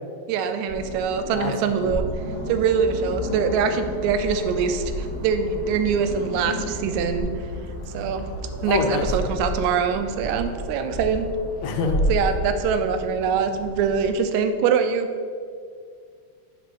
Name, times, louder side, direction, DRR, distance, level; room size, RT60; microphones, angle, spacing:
voice 1, 0.3-2.0 2.5-7.3 7.9-8.3 8.6-11.3 12.1-15.1, right 6 dB, 80° right, 8 dB, 1.9 m, -23 dB
sound 1, 0.7-14.1, equal, 50° left, 0.3 m, -31 dB
voice 2, 1.3-2.0 8.7-9.1 11.6-12.1, left 5 dB, 80° left, 3 dB, 2.0 m, -26 dB
7.4 x 3.4 x 6.1 m, 2.1 s
omnidirectional pair, 3.3 m